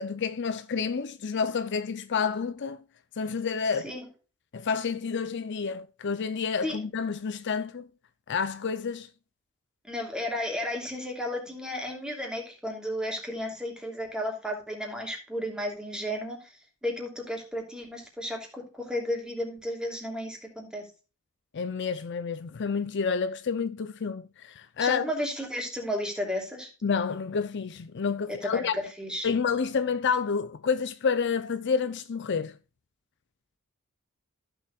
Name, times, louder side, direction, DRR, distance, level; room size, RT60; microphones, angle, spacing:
voice 1, 0.0-2.8 3.2-3.9 4.5-7.8 8.3-9.1 21.5-25.1 26.8-28.8 29.2-32.6, left 5 dB, 55° left, 0.5 m, -29 dB
voice 2, 9.8-16.4 16.8-20.8 24.8-26.7 28.4-29.3, left 1 dB, 5° right, 2.9 m, -33 dB
15.0 x 7.0 x 2.4 m
head